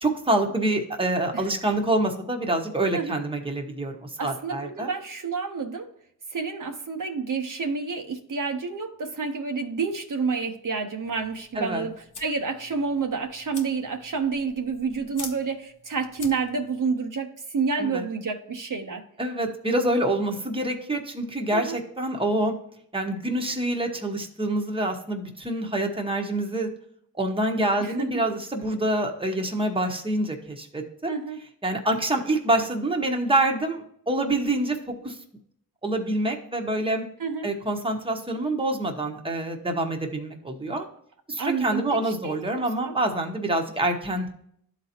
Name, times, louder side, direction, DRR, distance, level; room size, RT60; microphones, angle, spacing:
voice 1, 0.0-4.9 11.5-11.8 17.8-18.0 19.2-22.5 22.9-26.7 27.2-31.1 31.6-35.2 35.8-37.1 37.4-40.9 41.3-44.3, right 1 dB, 15° right, 3 dB, 1.1 m, -26 dB
voice 2, 4.2-5.9 6.3-19.0 21.5-21.8 27.8-28.1 31.1-31.4 37.2-37.5 41.4-41.8 42.2-43.0, right 5 dB, 60° right, 4 dB, 0.9 m, -29 dB
sound 1, 11.0-16.8, left 4 dB, 55° left, 1.0 m, -45 dB
12.0 x 4.0 x 2.9 m, 0.69 s
wide cardioid pair, 80°, 36 cm